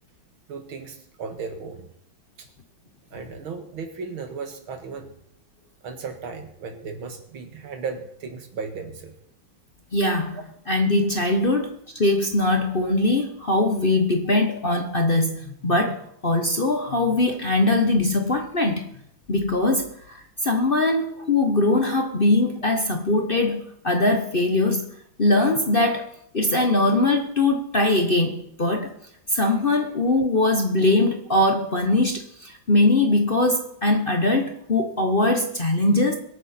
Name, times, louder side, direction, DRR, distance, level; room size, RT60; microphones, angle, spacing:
voice 1, 0.5-1.9 2.4-2.5 3.1-5.1 5.8-9.1 14.3-14.4 16.9-17.0 22.6-22.7, right 5 dB, 80° right, 6 dB, 2.6 m, -35 dB
voice 2, 9.9-10.4 10.7-18.9 19.3-24.9 25.2-26.1 26.3-28.9 29.3-36.2, left 2 dB, 35° left, 4 dB, 1.0 m, -21 dB
23.0 x 9.0 x 4.4 m, 0.70 s
omnidirectional pair, 2.2 m